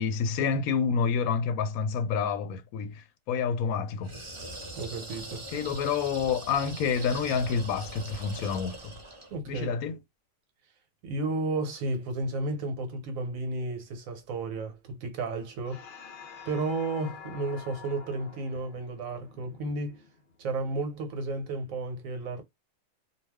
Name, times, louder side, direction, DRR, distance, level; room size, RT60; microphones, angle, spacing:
voice 1, 0.0-4.1 5.5-8.9 9.5-10.0, left 6 dB, 85° left, 1.0 m, -28 dB
sound 1, 4.0-9.4, right 1 dB, 30° right, 0.6 m, -42 dB
voice 2, 4.7-5.5 9.3-9.8 11.0-15.8 16.5-20.0 20.4-22.4, right 2 dB, 75° right, 1.2 m, -33 dB
sound 2, 15.6-20.4, left 6 dB, 60° left, 0.7 m, -47 dB
2.4 x 2.3 x 3.4 m
omnidirectional pair, 1.5 m